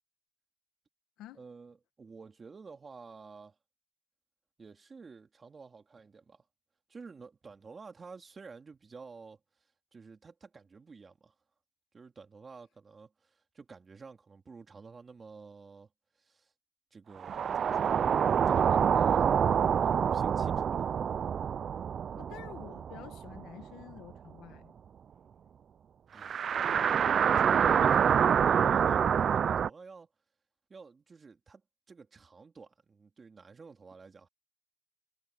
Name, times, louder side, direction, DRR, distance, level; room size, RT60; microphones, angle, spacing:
voice 1, 1.3-3.6 4.6-6.4 6.9-9.4 9.9-11.3 11.9-15.9 16.2-16.5 16.9-19.3 19.8-20.9 26.1-26.5 27.4-30.1 30.7-31.6 31.9-34.3, right 4 dB, 35° right, 3.1 m, -51 dB
sound 1, 17.2-23.8 24.1-24.2 26.2-29.7, right 8 dB, 55° right, 0.3 m, -26 dB
voice 2, 22.1-24.7 27.7-28.0 28.3-28.4, left 13 dB, 90° left, 1.6 m, -49 dB
cardioid pair, 90°, 0 cm